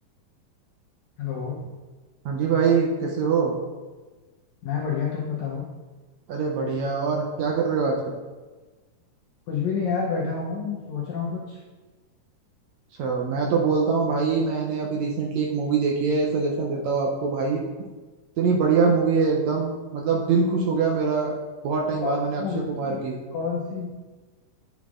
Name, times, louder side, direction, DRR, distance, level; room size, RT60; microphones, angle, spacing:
voice 1, 1.2-1.6 4.6-5.7 9.5-11.6 22.0-23.0 23.3-23.9, left 6 dB, 75° left, -3 dB, 1.8 m, -29 dB
voice 2, 2.2-3.5 6.3-8.1 13.0-17.6 18.4-21.4 21.6-23.2, right 5 dB, 85° right, -1 dB, 1.6 m, -23 dB
8.8 x 6.0 x 2.4 m, 1.3 s
omnidirectional pair, 3.9 m